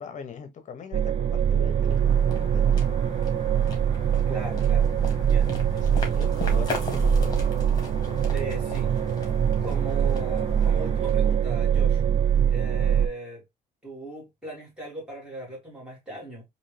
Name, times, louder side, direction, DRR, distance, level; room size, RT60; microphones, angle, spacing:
voice 1, 0.0-2.9 5.7-7.3, left 6 dB, 45° left, 0.9 m, -41 dB
sound 1, 0.9-13.1, right 8 dB, 40° right, 0.4 m, -23 dB
sound 2, 1.3-12.0, left 1 dB, 25° left, 2.0 m, -36 dB
voice 2, 4.3-5.6 8.3-8.9 9.6-12.0 12.5-13.4 13.8-16.4, right 1 dB, 5° right, 2.4 m, -38 dB
4.1 x 2.8 x 3.1 m
cardioid pair, 110°, 17 cm